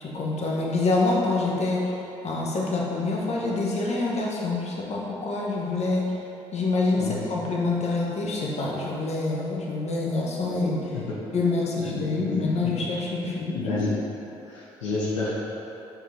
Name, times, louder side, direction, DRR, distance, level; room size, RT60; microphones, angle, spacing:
voice 1, 0.0-1.9 2.2-6.1 6.5-10.9 11.3-13.7, left 3 dB, 45° left, -3 dB, 1.3 m, -26 dB
voice 2, 11.7-12.3 12.6-12.7 13.5-13.9 14.4-15.3, left 3 dB, 80° left, -7 dB, 0.9 m, -30 dB
5.5 x 5.1 x 4.3 m, 2.9 s
hypercardioid pair, 50°, 15 cm